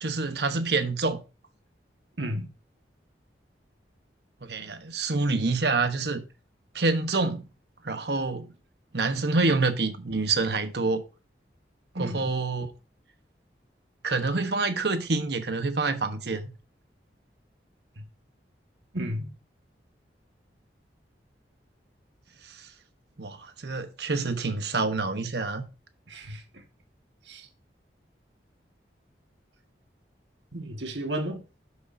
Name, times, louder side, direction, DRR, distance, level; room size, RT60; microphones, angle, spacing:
voice 1, 0.0-1.2 4.4-6.2 6.7-7.5 7.8-8.5 8.9-11.0 11.9-12.7 14.0-16.5 23.2-25.7, right 3 dB, 70° right, 1.1 m, -27 dB
voice 2, 2.2-2.5 11.9-12.3 18.9-19.3 26.1-26.6 27.3-27.5 30.5-31.4, right 1 dB, 90° right, 1.6 m, -33 dB
12.0 x 6.5 x 2.7 m
head